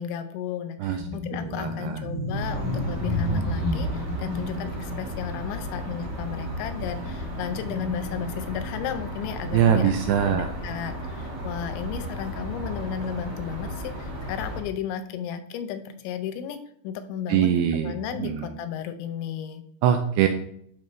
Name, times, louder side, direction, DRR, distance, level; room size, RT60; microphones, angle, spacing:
voice 1, 0.0-9.9 10.2-19.6, left 8 dB, 85° left, 8 dB, 3.1 m, -34 dB
sound 1, 0.9-10.9 11.1-11.4 12.2-13.2, left 1 dB, 25° right, 0.9 m, -33 dB
voice 2, 1.4-2.0 9.5-10.5 17.3-18.6 19.8-20.3, right 9 dB, 80° right, 6 dB, 2.4 m, -23 dB
sound 2, 2.3-14.6, equal, 45° right, 1.3 m, -34 dB
12.0 x 5.4 x 3.3 m, 0.67 s
omnidirectional pair, 5.3 m